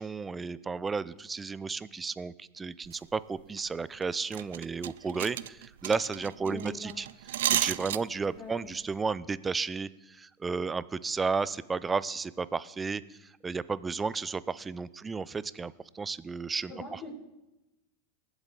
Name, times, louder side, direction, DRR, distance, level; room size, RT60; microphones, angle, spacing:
voice 1, 0.0-7.1 7.5-17.1, right 4 dB, 15° right, 18 dB, 0.5 m, -33 dB
sound 1, 2.8-3.0 3.4-3.7 4.0-4.1 4.3-8.4 8.7-9.0, right 12 dB, 80° right, 0.4 m, -32 dB
voice 2, 6.4-7.0 8.4-8.7 16.7-17.1, left 2 dB, 40° left, -9 dB, 5.3 m, -42 dB
20.0 x 8.1 x 3.9 m, 0.96 s
hypercardioid pair, 115°, 0 cm